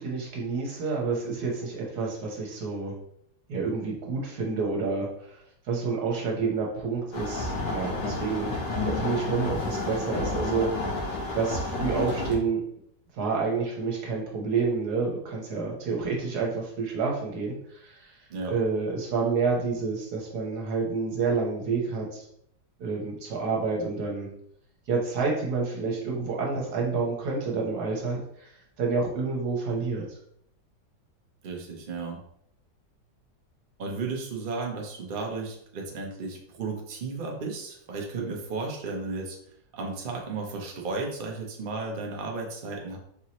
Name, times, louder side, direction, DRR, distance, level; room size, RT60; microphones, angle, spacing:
voice 1, 0.0-2.9 3.5-5.4 5.7-8.5 8.8-10.7 11.3-12.6 13.1-18.1 18.5-22.3 22.8-24.3 24.9-28.5 28.8-30.0, right 4 dB, 60° right, -2 dB, 1.5 m, -29 dB
sound 1, 7.1-12.3, left 2 dB, 70° left, 1.6 m, -30 dB
voice 2, 31.4-32.2 33.8-39.4 39.7-43.0, right 3 dB, 85° right, 0 dB, 0.4 m, -34 dB
4.7 x 2.9 x 3.0 m, 0.71 s
omnidirectional pair, 2.0 m